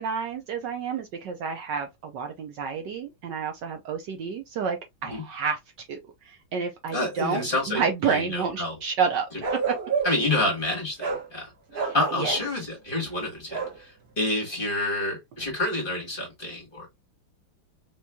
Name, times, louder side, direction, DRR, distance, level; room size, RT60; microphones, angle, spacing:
voice 1, 0.0-5.6 5.9-6.0 6.2-9.7 11.9-12.4, right 6 dB, 70° right, 1.3 m, -30 dB
voice 2, 6.9-8.7 10.0-16.9, left 2 dB, 25° left, 1.6 m, -28 dB
Bark, 9.4-10.3 11.0-11.3 11.7-12.5 13.5-13.8, right 5 dB, 50° right, 1.6 m, -29 dB
4.3 x 3.1 x 2.3 m
omnidirectional pair, 2.2 m